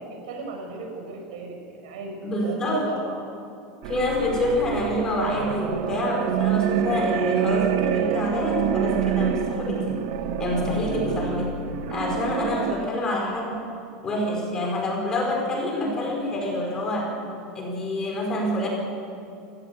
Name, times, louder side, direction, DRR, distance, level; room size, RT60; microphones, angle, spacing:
voice 1, 0.0-3.1 10.7-11.1, right 4 dB, 75° right, 2 dB, 6.6 m, -36 dB
voice 2, 2.2-2.9 3.8-10.0 10.4-11.4 11.9-13.6 14.0-17.1 17.5-18.7, left 1 dB, 15° left, -1 dB, 4.9 m, -27 dB
sound 1, 3.8-12.8, right 9 dB, 55° right, 1.4 m, -27 dB
28.5 x 15.0 x 8.3 m, 2.6 s
supercardioid pair, 170°, 4 cm